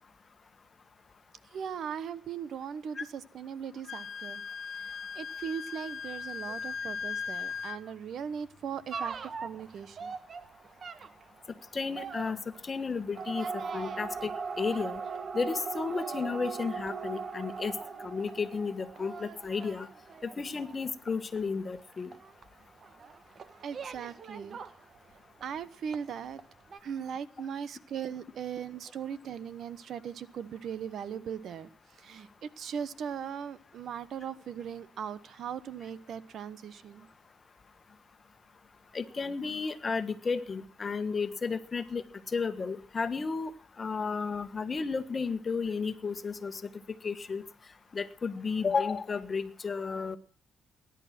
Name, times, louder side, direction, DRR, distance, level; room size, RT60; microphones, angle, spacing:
voice 1, 1.5-4.4 4.8-10.2 23.6-24.6 25.4-26.4 26.8-37.1, right 8 dB, 65° right, 16 dB, 1.0 m, -39 dB
Wind instrument woodwind instrument, 3.8-7.8, left 6 dB, 70° left, 1.3 m, -38 dB
sound 1, 8.9-25.6 25.9-26.5 26.7-26.8, right 5 dB, 50° right, 1.3 m, -40 dB
voice 2, 11.7-15.0 15.3-17.7 18.0-19.9 20.2-22.1 38.9-43.5 43.8-46.6 47.0-47.4 47.9-50.2, left 5 dB, 35° left, 11 dB, 1.4 m, -33 dB
18.5 x 11.0 x 6.0 m, 0.40 s
cardioid pair, 90°, 0 cm